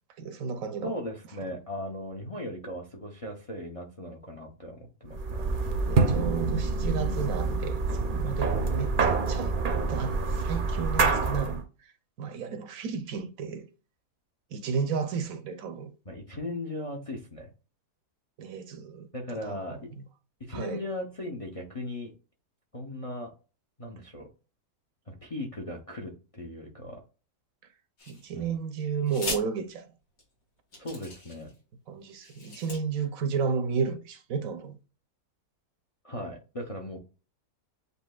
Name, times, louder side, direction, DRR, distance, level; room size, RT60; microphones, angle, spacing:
voice 1, 0.2-0.9 5.9-9.5 9.9-11.6 12.2-13.7 14.5-15.9 18.4-19.1 19.4-19.6 20.0-20.1 20.5-20.8 28.1-29.9 31.9-34.8, right 6 dB, 70° right, 1.0 m, -32 dB
voice 2, 0.8-5.5 6.9-7.3 16.1-17.5 19.1-19.9 20.4-22.1 22.7-23.3 23.8-24.3 25.1-27.0 28.3-28.6 30.8-31.5 36.0-37.0, left 1 dB, 35° left, 0.6 m, -38 dB
sound 1, 5.1-11.6, right 4 dB, 45° right, 0.7 m, -27 dB
sound 2, 28.0-28.5 29.1-29.4 30.2-30.3 30.7-31.5 32.1-32.8, left 2 dB, 85° left, 2.5 m, -38 dB
8.1 x 2.7 x 2.3 m
omnidirectional pair, 1.6 m